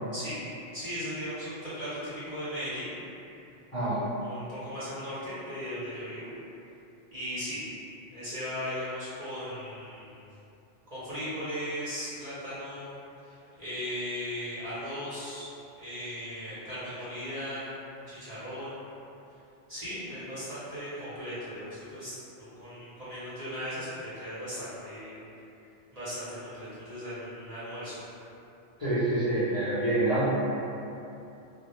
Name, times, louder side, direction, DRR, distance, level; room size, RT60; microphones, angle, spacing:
voice 1, 0.1-0.4 0.7-2.9 4.2-6.3 7.1-7.6 8.1-10.2 10.9-12.9 13.2-15.5 15.8-17.7 18.1-18.8 19.7-25.2 25.9-28.0, equal, 40° right, -13 dB, 0.7 m, -37 dB
voice 2, 28.8-30.3, right 2 dB, 40° left, -15 dB, 0.5 m, -26 dB
2.1 x 2.1 x 2.9 m, 2.8 s
omnidirectional pair, 1.2 m